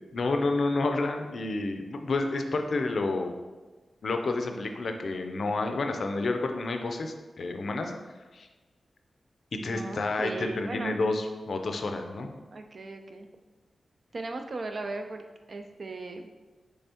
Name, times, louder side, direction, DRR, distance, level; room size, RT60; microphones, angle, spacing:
voice 1, 0.0-3.3 4.0-7.9 8.3-8.5 9.5-12.3, left 3 dB, 70° left, 5 dB, 0.4 m, -29 dB
voice 2, 9.7-10.9 12.5-13.3 14.1-16.3, right 3 dB, 55° right, 5 dB, 0.4 m, -37 dB
5.5 x 3.2 x 2.8 m, 1.2 s
wide cardioid pair, 80°, 0 cm